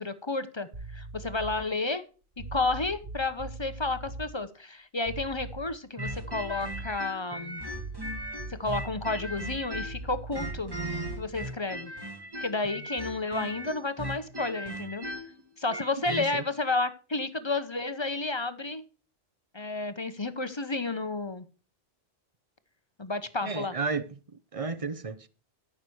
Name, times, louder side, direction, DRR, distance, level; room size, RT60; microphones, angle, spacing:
voice 1, 0.0-2.0 2.5-7.6 8.6-10.8 11.2-11.9 12.4-15.1 15.6-18.8 19.5-21.4 23.0-23.7, left 3 dB, 25° left, 0.8 m, -31 dB
sound 1, 0.7-1.7 2.4-4.3 5.1-5.8 6.1-7.0 7.7-11.4, right 3 dB, 55° right, 1.8 m, -41 dB
sound 2, 6.0-10.0 10.3-16.3, equal, 20° right, 1.9 m, -37 dB
voice 2, 16.1-16.4 23.4-24.2 24.5-25.3, right 4 dB, 35° right, 0.7 m, -33 dB
14.0 x 6.5 x 4.6 m
omnidirectional pair, 1.2 m